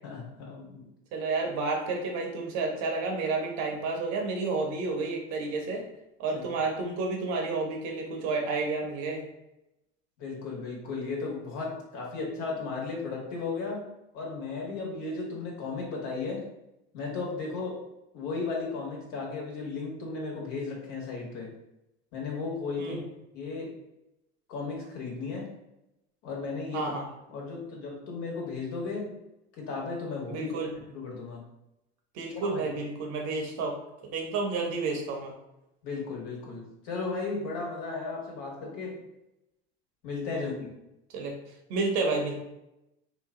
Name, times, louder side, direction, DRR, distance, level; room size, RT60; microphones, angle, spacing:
voice 1, 0.0-0.9 6.3-6.4 10.2-13.9 14.1-16.5 16.9-17.8 18.1-21.5 22.1-23.0 23.3-23.7 24.5-25.5 26.2-26.9 27.3-29.2 29.6-30.5 30.9-31.4 32.3-32.6 35.8-39.0 40.0-40.7, left 4 dB, 60° left, -2 dB, 1.4 m, -35 dB
voice 2, 1.1-5.8 6.2-9.2 22.8-23.0 26.7-27.1 30.3-30.7 32.1-33.8 34.0-35.3 40.3-40.5 41.1-41.3 41.7-42.4, right 3 dB, 60° right, 1 dB, 1.0 m, -30 dB
2.9 x 2.3 x 3.6 m, 0.90 s
hypercardioid pair, 90°, 32 cm